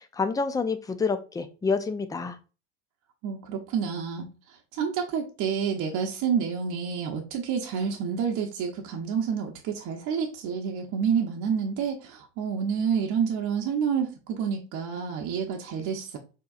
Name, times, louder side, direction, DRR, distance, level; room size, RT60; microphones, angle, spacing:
voice 1, 0.0-2.4, left 4 dB, 10° left, 10 dB, 0.4 m, -28 dB
voice 2, 3.2-4.3 4.7-16.2, right 7 dB, 55° right, 1 dB, 0.8 m, -29 dB
4.6 x 3.0 x 2.3 m, 0.32 s
hypercardioid pair, 80°, 36 cm